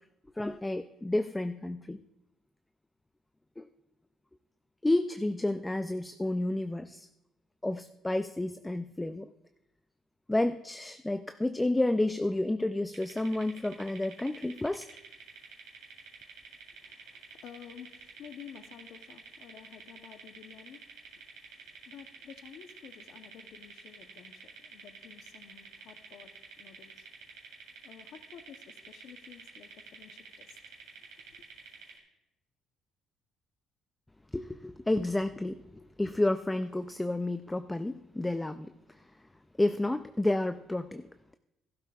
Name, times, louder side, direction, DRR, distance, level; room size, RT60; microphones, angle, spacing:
voice 1, 0.4-2.0 3.6-3.7 4.8-7.1 7.6-9.3 10.3-14.9 34.3-39.0 39.6-41.1, left 1 dB, 10° left, 10 dB, 0.4 m, -30 dB
sound 1, 12.9-32.0, right 5 dB, 85° right, 3.3 m, -50 dB
voice 2, 16.8-20.8 21.1-27.1 27.8-30.6 31.4-31.5, left 9 dB, 70° left, 8 dB, 0.8 m, -52 dB
16.5 x 12.0 x 2.4 m, 0.88 s
cardioid pair, 105°, 0 cm